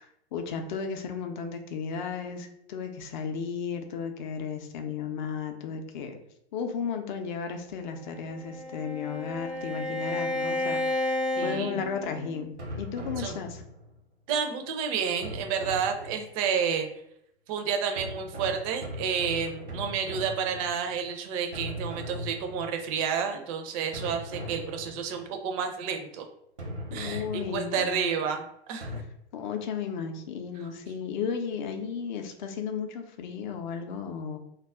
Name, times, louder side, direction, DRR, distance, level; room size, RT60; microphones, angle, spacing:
voice 1, 0.0-6.2 6.5-13.6 26.9-28.1 29.3-34.4, left 6 dB, 45° left, 6 dB, 0.5 m, -34 dB
Bowed string instrument, 8.0-12.5, left 2 dB, 85° left, 0.7 m, -32 dB
voice 2, 11.4-11.8 13.2-13.3 14.3-16.9 17.5-26.3 26.9-27.2 27.5-29.0, right 6 dB, 35° right, 5 dB, 0.4 m, -30 dB
sound 1, 12.6-14.0 15.2-16.5 18.0-21.0 21.5-23.0 23.9-25.3 26.6-28.0 28.8-29.0, equal, 85° right, 0.8 m, -39 dB
2.3 x 2.0 x 3.4 m, 0.76 s
figure-of-eight pair, 105°, 33 cm